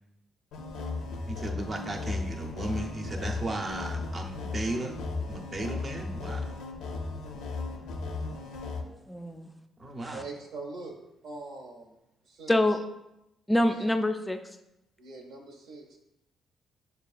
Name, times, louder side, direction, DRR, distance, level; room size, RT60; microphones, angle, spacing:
sound 1, 0.5-8.8, left 3 dB, 90° left, 0.4 m, -36 dB
voice 1, 1.3-5.0 5.3-6.5 9.8-10.3, right 2 dB, 35° right, 2 dB, 0.6 m, -35 dB
voice 2, 8.9-9.5 10.0-10.2 12.5-12.8 13.5-14.4, left 1 dB, 10° left, 6 dB, 0.3 m, -26 dB
voice 3, 10.1-11.0 11.2-11.9 12.2-12.8 13.7-13.8 15.0-16.0, right 3 dB, 80° right, 0 dB, 0.8 m, -43 dB
6.5 x 2.3 x 2.4 m, 0.88 s
cardioid pair, 90°, 0 cm